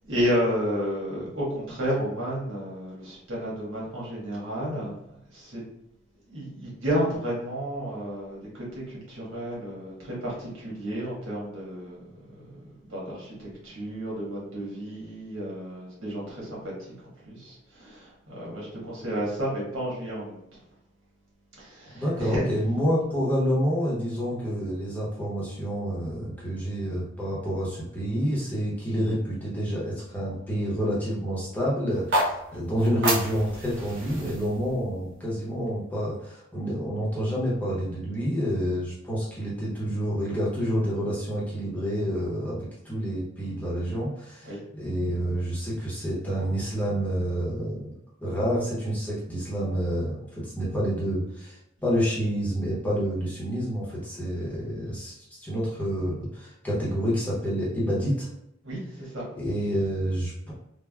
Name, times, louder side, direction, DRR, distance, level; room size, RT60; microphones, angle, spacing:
voice 1, 0.0-5.0 5.3-5.6 6.3-16.7 17.0-20.4 21.6-22.4 44.4-44.6 58.6-59.2, equal, 85° right, -5 dB, 1.3 m, -32 dB
voice 2, 22.0-47.9 48.2-58.3 59.3-60.5, equal, 10° left, -7 dB, 0.8 m, -28 dB
sound 1, 31.9-36.0, right 1 dB, 65° right, 0.8 m, -31 dB
3.4 x 2.1 x 2.3 m, 0.81 s
head